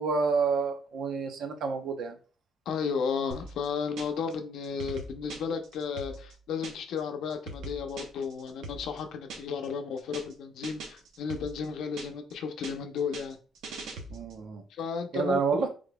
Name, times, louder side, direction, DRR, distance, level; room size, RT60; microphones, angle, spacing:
voice 1, 0.0-2.2 14.1-14.6 15.1-15.7, right 5 dB, 65° right, 6 dB, 0.7 m, -28 dB
voice 2, 2.7-13.4 14.7-15.4, left 6 dB, 75° left, 6 dB, 0.7 m, -33 dB
sound 1, 3.3-4.3 4.6-7.0 7.3-9.7 10.0-10.3 10.6-12.3 12.6-14.4, right 3 dB, 90° right, 0.9 m, -42 dB
4.9 x 3.8 x 2.3 m, 0.38 s
cardioid pair, 140°, 0 cm